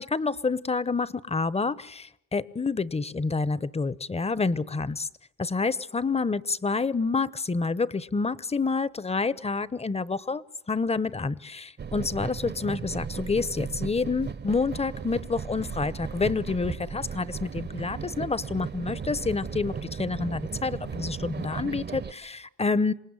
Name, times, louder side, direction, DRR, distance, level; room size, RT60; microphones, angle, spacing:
voice 1, 0.0-5.1 5.4-22.9, left 4 dB, 20° left, 19 dB, 0.9 m, -28 dB
sound 1, 11.8-22.1, right 6 dB, 35° right, 0.9 m, -36 dB
27.0 x 19.0 x 9.8 m, 0.82 s
cardioid pair, 90°, 30 cm